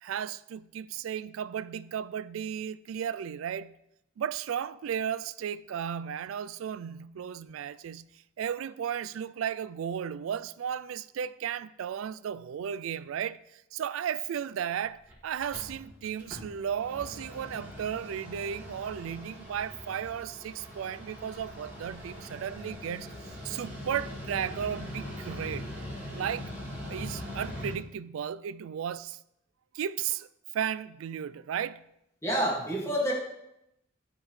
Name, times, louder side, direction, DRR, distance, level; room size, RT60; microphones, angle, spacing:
voice 1, 0.0-3.8 4.2-25.7 26.1-26.5 26.9-29.2 29.7-30.3 30.5-31.9, right 8 dB, 80° right, 0.3 m, -35 dB
Mechanical fan, 14.7-14.8 15.1-15.2 15.4-27.7, left 1 dB, 10° right, 2.4 m, -42 dB
voice 2, 32.2-33.1, equal, 15° left, 2.1 m, -28 dB
12.5 x 5.2 x 3.2 m
head